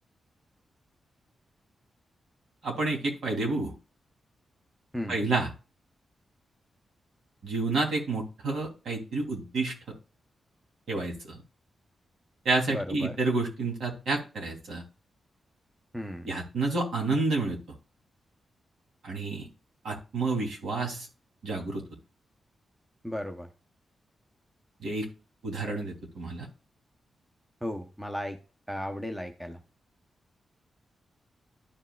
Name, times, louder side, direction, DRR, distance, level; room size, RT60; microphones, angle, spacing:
voice 1, 2.6-3.7 5.1-5.5 7.4-9.7 10.9-11.4 12.4-14.8 16.2-17.6 19.0-19.5 19.8-21.1 21.4-21.8 24.8-25.1 25.4-26.5, right 3 dB, 75° right, 0 dB, 2.8 m, -29 dB
voice 2, 4.9-5.2 12.7-13.2 15.9-16.3 23.0-23.5 27.6-28.4 28.7-29.6, equal, 5° right, 5 dB, 0.8 m, -35 dB
12.0 x 5.4 x 2.3 m, 0.32 s
cardioid pair, 110°, 0 cm